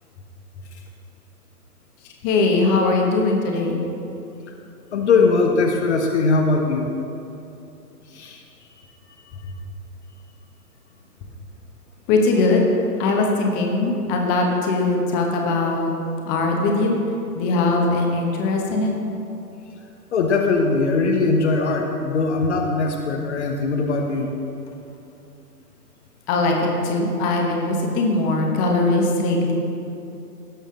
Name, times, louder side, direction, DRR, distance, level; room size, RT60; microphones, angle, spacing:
voice 1, 2.2-3.8 12.1-12.7 13.0-15.9 16.3-17.0 17.3-18.9 26.3-26.6 26.8-29.5, left 3 dB, 20° left, 1 dB, 1.1 m, -20 dB
voice 2, 4.9-6.9 8.2-8.4 20.1-24.3, left 3 dB, 45° left, 2 dB, 1.0 m, -20 dB
17.0 x 6.8 x 3.8 m, 2.8 s
figure-of-eight pair, 125°, 48 cm